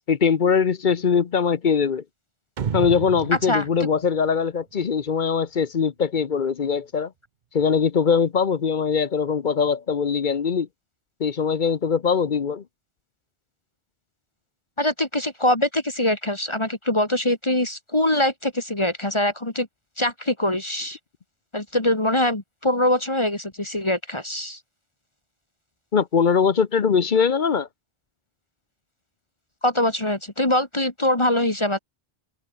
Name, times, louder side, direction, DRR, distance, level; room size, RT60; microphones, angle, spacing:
voice 1, 0.1-2.0 2.7-7.1 7.5-10.7 11.2-12.6 25.9-27.7, left 6 dB, 50° left, 0.9 m, -21 dB
sound 1, 2.6-5.1, right 7 dB, 50° right, 0.9 m, -32 dB
voice 2, 14.8-19.7 20.0-21.0 21.5-24.6 29.6-31.8, left 1 dB, 25° left, 2.0 m, -23 dB
omnidirectional pair, 1.1 m